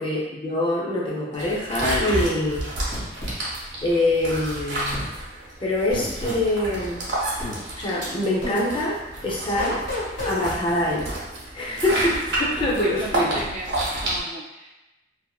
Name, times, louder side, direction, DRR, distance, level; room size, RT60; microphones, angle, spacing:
voice 1, 0.0-2.7 3.8-5.0 5.6-7.0 7.8-9.0 9.2-9.8 10.2-11.1 11.5-13.4, left 1 dB, 25° left, -4 dB, 0.5 m, -24 dB
sound 1, 1.3-14.2, right 1 dB, 60° right, 0.7 m, -30 dB
sound 2, 2.9-3.4 4.9-5.1 5.9-6.4 7.4-7.6 8.4-8.6 9.6-10.4, left 2 dB, 90° left, 1.1 m, -30 dB
voice 2, 12.3-14.7, right 2 dB, 35° right, -3 dB, 0.3 m, -37 dB
2.5 x 2.4 x 2.3 m, 0.98 s
head